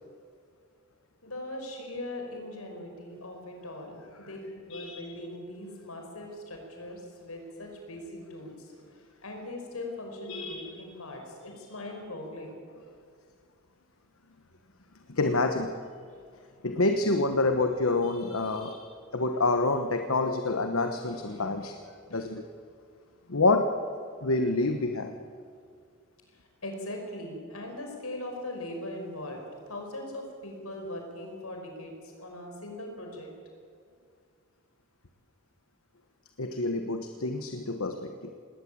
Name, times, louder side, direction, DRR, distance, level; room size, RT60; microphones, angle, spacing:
voice 1, 1.2-8.7 9.2-12.6 21.2-21.7 22.1-22.2 26.6-33.3, left 1 dB, 90° left, 2 dB, 5.5 m, -40 dB
voice 2, 4.7-5.2 10.3-10.8 15.1-15.7 16.6-21.7 22.1-22.4 23.3-23.7 24.2-25.2 36.4-38.3, left 2 dB, 70° left, 6 dB, 1.3 m, -27 dB
19.5 x 18.5 x 8.7 m, 2.2 s
head